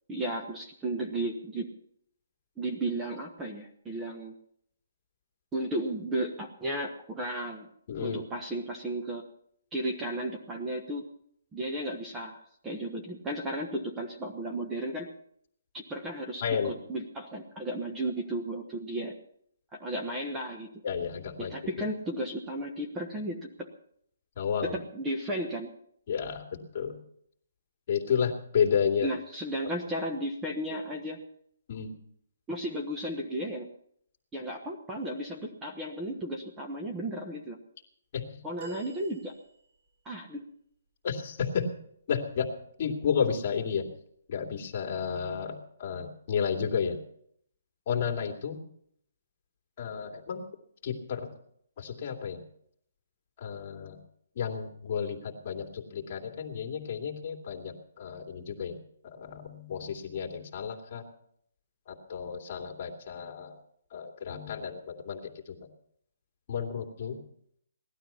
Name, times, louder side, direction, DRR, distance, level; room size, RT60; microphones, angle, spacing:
voice 1, 0.1-1.7 2.6-4.3 5.5-7.7 8.0-9.2 9.7-11.1 11.5-15.1 15.7-19.2 19.7-20.7 21.4-23.7 24.6-25.7 29.0-31.2 32.5-33.7 34.3-37.6 38.4-39.3 40.0-40.4, right 1 dB, 10° right, 1 dB, 1.1 m, -34 dB
voice 2, 7.9-8.2 16.4-16.7 20.8-21.5 24.4-24.8 26.1-27.0 27.9-29.1 31.7-31.9 38.1-38.4 41.0-41.7 42.1-42.5 42.8-43.9 44.3-47.0 47.9-48.6 49.8-50.5 50.8-51.3 51.8-52.4 53.4-54.0 54.4-58.8 59.0-61.0 61.9-63.5 63.9-65.2 65.5-65.6 66.5-67.2, left 7 dB, 35° left, 1 dB, 2.6 m, -32 dB
sound 1, 38.6-40.0 42.4-42.6 43.9-44.0, right 4 dB, 35° right, 5.9 m, -48 dB
18.5 x 12.5 x 5.7 m, 0.67 s
hypercardioid pair, 165°, 0 cm